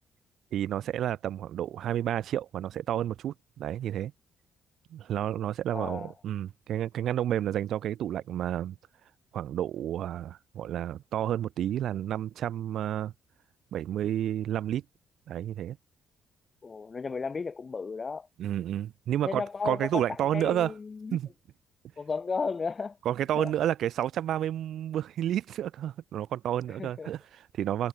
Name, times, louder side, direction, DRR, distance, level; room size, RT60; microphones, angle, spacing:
voice 1, 0.5-4.1 4.9-8.7 9.3-13.1 13.7-14.8 15.3-15.8 18.4-20.7 21.1-21.3 23.0-27.9, right 11 dB, 75° right, 1.7 m, -30 dB
voice 2, 5.7-6.1 16.6-18.3 19.2-21.2 22.0-23.0 23.3-23.5 26.8-27.1, left 4 dB, 35° left, 6.6 m, -34 dB
cardioid pair, 90°, 0 cm